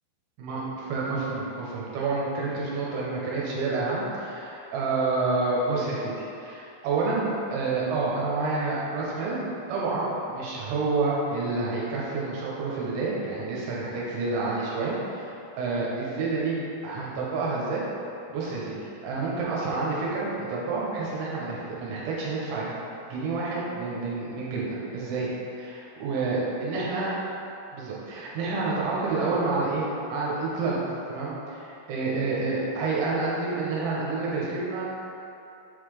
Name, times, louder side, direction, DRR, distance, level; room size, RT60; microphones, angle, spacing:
voice 1, 0.4-9.4 9.7-17.8 18.3-18.8 19.0-25.3 25.6-27.1 27.7-30.8 31.1-34.8, right 3 dB, 80° right, -5 dB, 3.2 m, -29 dB
7.8 x 4.0 x 3.3 m, 2.9 s
omnidirectional pair, 5.6 m